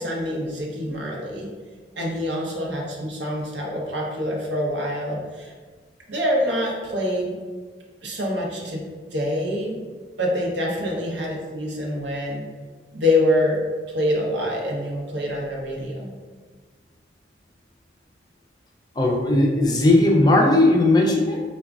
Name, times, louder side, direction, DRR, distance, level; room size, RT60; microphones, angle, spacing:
voice 1, 0.0-1.5 2.0-5.5 6.1-7.4 8.0-8.8 9.1-9.8 10.2-12.4 12.9-13.6 13.9-16.1, left 1 dB, 80° right, -2 dB, 0.8 m, -25 dB
voice 2, 19.0-21.4, left 2 dB, 20° left, 0 dB, 0.4 m, -17 dB
5.0 x 2.3 x 2.3 m, 1.5 s
head